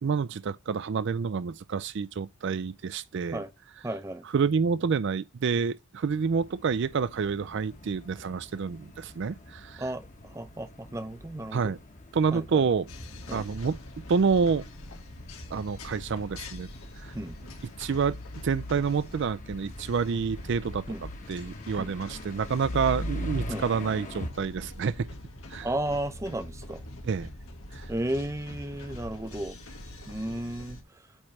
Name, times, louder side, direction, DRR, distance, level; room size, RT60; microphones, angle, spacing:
voice 1, 0.0-3.4 4.3-9.9 11.5-11.8 12.1-12.9 13.3-13.8 14.1-14.6 15.5-16.7 17.0-17.1 17.8-18.2 18.4-20.8 21.3-25.1 25.5-25.7 27.0-27.3 27.7-27.9, right 5 dB, 60° right, 0.4 m, -28 dB
voice 2, 3.8-4.2 9.8-10.1 10.3-11.7 12.3-12.6 13.3-13.4 17.1-17.4 20.9-21.0 21.8-21.9 23.5-23.6 25.6-26.8 27.9-29.6 30.1-30.8, right 1 dB, 15° right, 0.6 m, -33 dB
sound 1, 6.1-24.3, equal, 35° left, 1.1 m, -42 dB
sound 2, 12.9-30.8, left 1 dB, 85° left, 1.7 m, -44 dB
8.7 x 3.3 x 5.8 m
head